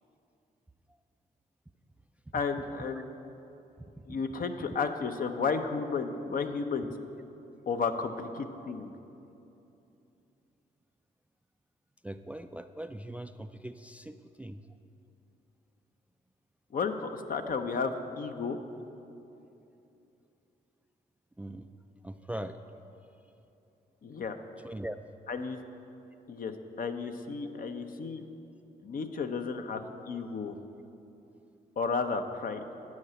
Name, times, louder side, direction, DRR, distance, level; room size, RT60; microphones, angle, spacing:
voice 1, 2.3-3.1 4.1-6.9 7.7-8.9 16.7-17.9 18.2-18.6 24.0-24.4 25.3-25.6 26.3-28.2 28.8-30.6 31.8-32.6, left 5 dB, 50° left, 7 dB, 0.7 m, -33 dB
voice 2, 3.8-4.2 12.0-14.6 21.4-21.7 22.0-22.6 24.6-25.0, right 1 dB, 10° right, 10 dB, 0.3 m, -41 dB
9.5 x 4.8 x 7.5 m, 2.9 s
supercardioid pair, 55°, 18 cm